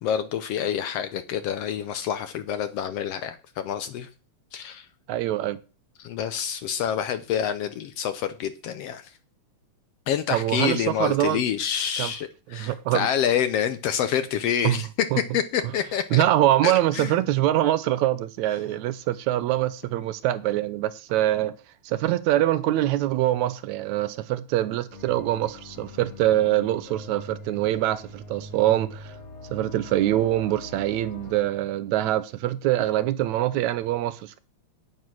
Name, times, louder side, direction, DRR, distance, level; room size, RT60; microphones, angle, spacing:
voice 1, 0.0-4.1 4.5-4.9 6.0-9.1 10.1-14.9 15.3-16.2 16.6-17.2, left 9 dB, 70° left, 1.6 m, -27 dB
voice 2, 5.1-5.6 10.3-11.4 12.0-12.1 12.5-13.1 14.6-14.8 15.1-15.2 16.1-21.6 21.9-29.1 29.5-34.4, right 14 dB, 80° right, 2.0 m, -24 dB
sound 1, 24.9-31.4, left 1 dB, 30° left, 3.9 m, -43 dB
9.4 x 9.0 x 6.1 m
omnidirectional pair, 3.3 m